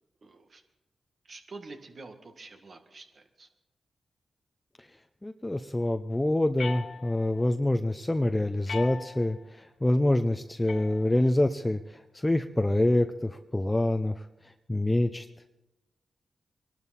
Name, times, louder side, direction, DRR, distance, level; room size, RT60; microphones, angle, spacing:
voice 1, 0.2-0.6 1.3-3.5, right 3 dB, 60° right, 5 dB, 1.7 m, -47 dB
voice 2, 5.2-14.3 14.7-15.3, left 1 dB, 20° left, 7 dB, 0.7 m, -26 dB
sound 1, 6.6-7.5 8.7-9.5 10.7-11.5, left 5 dB, 70° left, 0.9 m, -40 dB
22.5 x 12.0 x 4.2 m, 1.0 s
cardioid pair, 50°, 0 cm